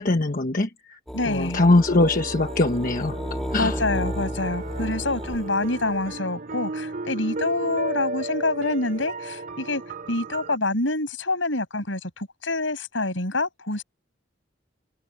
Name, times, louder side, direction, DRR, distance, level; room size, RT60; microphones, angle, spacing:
voice 1, 0.0-1.0 1.3-3.2 3.5-3.8, left 2 dB, 45° left, 1.2 m, -22 dB
voice 2, 1.1-1.6 3.6-9.8 10.1-13.8, left 2 dB, 75° left, 7.2 m, -26 dB
sound 1, 1.1-6.2, equal, ahead, 2.6 m, -33 dB
sound 2, 1.9-10.6, right 2 dB, 50° right, 2.4 m, -34 dB
head